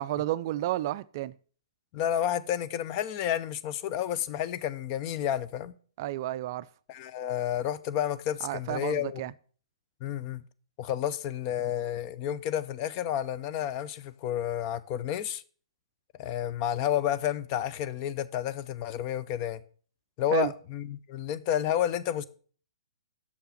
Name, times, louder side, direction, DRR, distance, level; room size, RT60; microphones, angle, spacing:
voice 1, 0.0-1.3 6.0-6.7 8.4-9.3 20.3-20.5, right 14 dB, 40° right, 0.3 m, -31 dB
voice 2, 1.9-5.7 6.9-9.2 10.0-10.4 10.8-15.4 16.2-19.6 20.2-22.2, left 10 dB, 35° left, 0.5 m, -30 dB
6.5 x 5.6 x 7.0 m
figure-of-eight pair, 125°, 3 cm